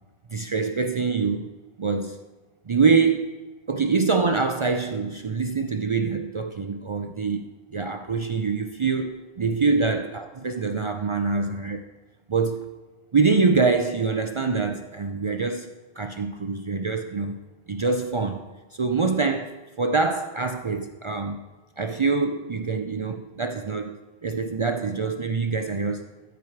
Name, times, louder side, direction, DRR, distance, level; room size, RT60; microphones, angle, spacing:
voice 1, 0.3-1.5 1.8-2.2 2.7-3.4 3.7-7.4 7.7-11.8 12.3-12.7 13.1-17.4 17.7-18.4 18.7-21.5 21.8-26.1, right 4 dB, 55° right, 7 dB, 0.3 m, -25 dB
14.0 x 4.8 x 4.6 m, 1.2 s
omnidirectional pair, 1.1 m